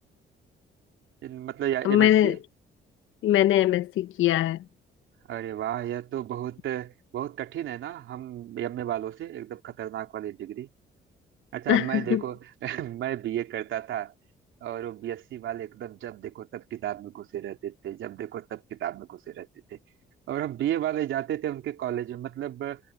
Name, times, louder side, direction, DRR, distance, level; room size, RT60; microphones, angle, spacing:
voice 1, 1.2-2.4 5.3-10.7 11.5-14.1 14.6-19.8 20.3-22.8, right 12 dB, 80° right, 3.2 m, -33 dB
voice 2, 1.8-2.4 3.2-4.6 11.7-12.2, left 13 dB, 85° left, 1.1 m, -22 dB
cardioid pair, 90°, 20 cm